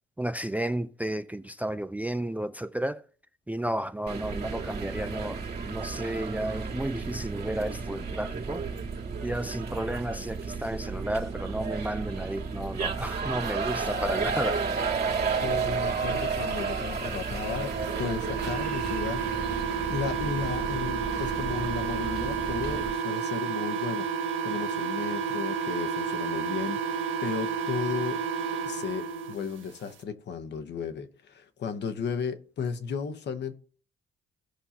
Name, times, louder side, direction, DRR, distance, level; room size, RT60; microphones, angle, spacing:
voice 1, 0.2-3.0 3.5-5.4 5.7-8.6 9.2-14.6, right 1 dB, 10° right, 0.4 m, -32 dB
sound 1, 4.1-22.9, right 5 dB, 55° right, 2.0 m, -32 dB
voice 2, 15.4-19.5 19.9-28.2 28.5-33.5, left 6 dB, 60° left, 1.1 m, -34 dB
sound 2, 17.3-29.3, right 6 dB, 85° right, 1.1 m, -31 dB
16.0 x 5.5 x 2.9 m
cardioid pair, 90°, 20 cm